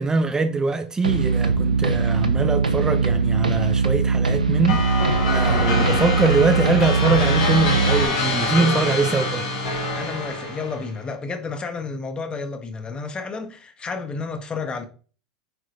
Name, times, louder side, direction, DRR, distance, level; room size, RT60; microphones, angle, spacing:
voice 1, 0.0-9.4, right 3 dB, 15° right, 0.9 m, -23 dB
sound 1, 1.0-8.0, right 4 dB, 90° right, 1.0 m, -21 dB
sound 2, 4.7-10.9, left 3 dB, 65° left, 3.4 m, -25 dB
voice 2, 9.9-14.9, left 4 dB, 25° left, 1.6 m, -31 dB
9.5 x 4.9 x 4.0 m
figure-of-eight pair, 85°, 4 cm